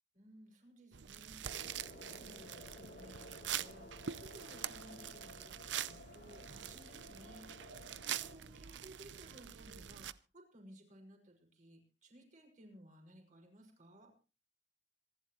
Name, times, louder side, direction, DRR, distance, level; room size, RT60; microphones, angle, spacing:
voice 1, 0.1-14.1, right 1 dB, 45° right, 1 dB, 5.8 m, -59 dB
sound 1, 0.9-10.1, right 10 dB, 80° right, 0.7 m, -45 dB
sound 2, 1.4-8.4, left 2 dB, 65° left, 3.2 m, -55 dB
26.5 x 12.0 x 3.1 m, 0.33 s
head